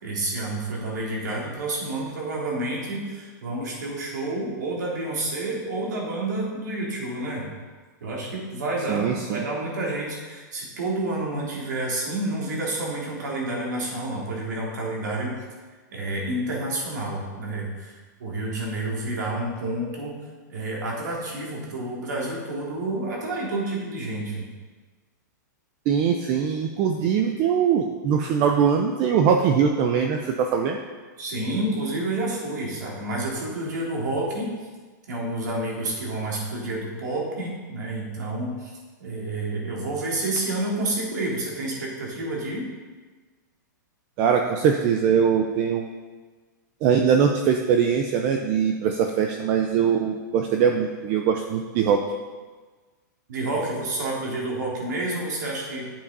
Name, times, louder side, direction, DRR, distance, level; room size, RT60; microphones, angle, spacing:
voice 1, 0.0-7.5 8.0-15.4 15.9-20.1 20.5-24.5 31.2-34.5 35.1-38.7 39.0-42.7 53.3-55.9, right 2 dB, 65° right, -3 dB, 3.4 m, -29 dB
voice 2, 8.9-9.4 25.9-30.8 44.2-45.9 46.8-52.0, right 7 dB, 20° right, 4 dB, 0.4 m, -22 dB
9.9 x 7.3 x 5.3 m, 1.4 s
supercardioid pair, 180°, 10 cm